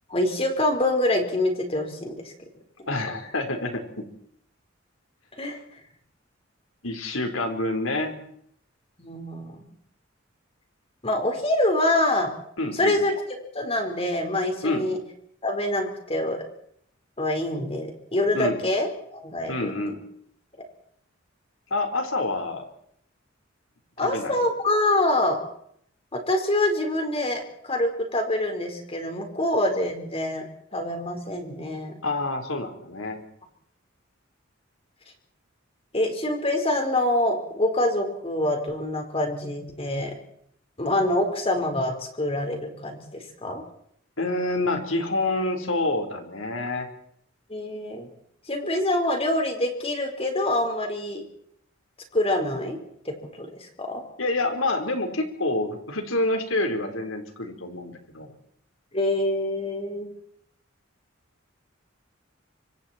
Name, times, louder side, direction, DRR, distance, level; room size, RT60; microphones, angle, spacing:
voice 1, 0.1-2.3 5.4-5.6 9.0-9.6 11.0-12.3 12.7-13.1 13.5-15.0 15.4-16.4 17.2-19.7 24.0-25.4 26.1-30.5 30.7-32.0 35.9-40.1 40.8-43.6 47.5-48.1 48.5-51.2 52.1-52.8 53.0-53.5 53.8-54.0 58.9-60.1, left 1 dB, 30° left, 4 dB, 4.5 m, -25 dB
voice 2, 2.9-4.1 6.8-8.3 12.6-13.0 14.6-14.9 18.3-18.6 19.5-20.0 21.7-22.7 24.0-24.3 32.0-33.2 44.2-46.9 54.2-58.3, left 2 dB, 80° left, 5 dB, 4.3 m, -27 dB
26.0 x 25.0 x 4.5 m, 0.68 s
head